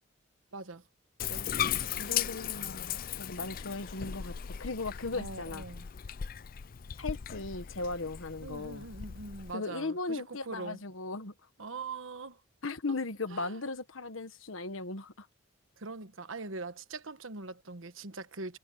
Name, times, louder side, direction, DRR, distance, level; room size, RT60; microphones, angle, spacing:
voice 1, 0.5-0.8 1.3-2.1 5.1-5.9 8.4-10.8 11.6-12.4 13.3-13.5 15.8-18.6, right 3 dB, 80° right, 1.3 m, -42 dB
Bathtub (filling or washing), 1.2-9.5, left 9 dB, 45° left, 0.4 m, -37 dB
voice 2, 2.0-5.7 7.0-8.9 9.5-11.3 12.6-15.3, left 3 dB, 85° left, 1.3 m, -37 dB
head